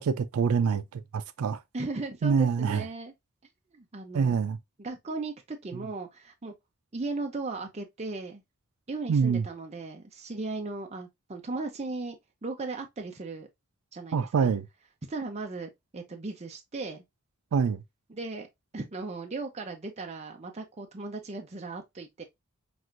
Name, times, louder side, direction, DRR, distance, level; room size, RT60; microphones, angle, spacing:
voice 1, 0.0-1.6 2.2-2.9 4.1-4.6 9.1-9.4 14.1-14.6 17.5-17.8, right 6 dB, 80° right, 0.4 m, -25 dB
voice 2, 1.7-3.1 3.7-4.4 4.8-6.5 6.9-8.4 8.9-12.2 12.4-13.5 13.9-14.5 15.1-17.0 18.1-18.5 18.7-22.2, right 3 dB, 30° right, 0.5 m, -37 dB
6.0 x 2.5 x 2.5 m
head